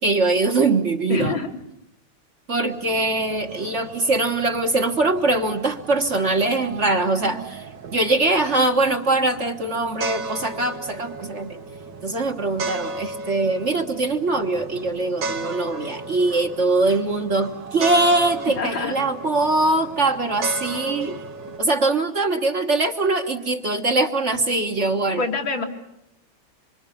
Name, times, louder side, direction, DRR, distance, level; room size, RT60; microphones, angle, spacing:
voice 1, 0.0-1.4 2.5-7.6 7.9-11.6 12.0-21.2 21.6-25.2, right 2 dB, 40° right, 4 dB, 1.5 m, -22 dB
voice 2, 1.1-1.5 18.6-18.9 25.2-25.6, left 4 dB, 75° left, 2 dB, 3.3 m, -25 dB
sound 1, 2.6-21.6, right 3 dB, 65° right, 2.1 m, -35 dB
26.5 x 24.5 x 7.2 m, 0.82 s
omnidirectional pair, 2.1 m